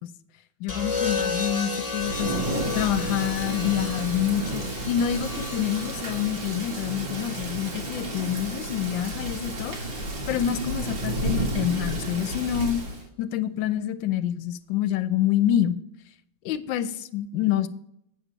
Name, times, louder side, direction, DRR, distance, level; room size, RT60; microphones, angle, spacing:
voice 1, 0.6-2.3 2.7-10.0 10.3-12.8 13.2-15.8 16.4-17.7, left 10 dB, 80° left, 13 dB, 1.3 m, -27 dB
sound 1, 0.7-8.8 10.1-10.4, left 4 dB, 20° left, 1.2 m, -34 dB
Thunder / Rain, 1.9-13.0, right 1 dB, 75° right, 2.6 m, -32 dB
8.5 x 6.7 x 5.0 m, 0.77 s
omnidirectional pair, 2.1 m